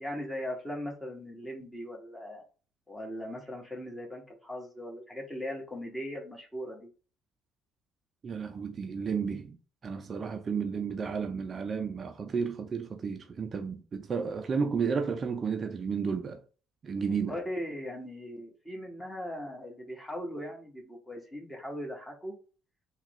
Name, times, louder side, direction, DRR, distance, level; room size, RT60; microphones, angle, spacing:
voice 1, 0.0-2.4 2.9-6.9 17.1-22.3, equal, 10° left, 1.6 m, -39 dB
voice 2, 8.2-9.6 9.8-16.4 16.8-17.3, right 6 dB, 40° right, 0.5 m, -32 dB
3.5 x 2.3 x 3.1 m
hypercardioid pair, 55°, 0 cm